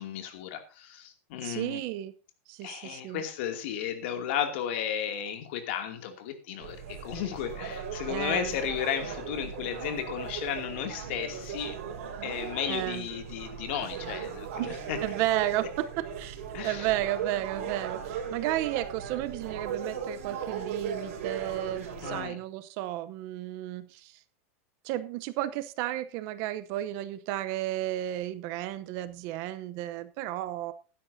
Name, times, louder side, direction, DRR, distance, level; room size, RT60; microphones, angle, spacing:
voice 1, 0.0-1.8 2.6-11.8 12.2-15.0 16.5-16.9 22.0-22.4, left 9 dB, 50° left, 6 dB, 2.5 m, -34 dB
voice 2, 1.4-2.1 2.5-3.2 8.1-8.5 12.7-13.0 14.6-24.2 24.8-30.7, right 14 dB, 35° right, 13 dB, 0.8 m, -33 dB
sound 1, 6.6-22.2, right 7 dB, 65° right, 4.9 m, -37 dB
16.0 x 12.0 x 2.7 m, 0.32 s
supercardioid pair, 175°, 8 cm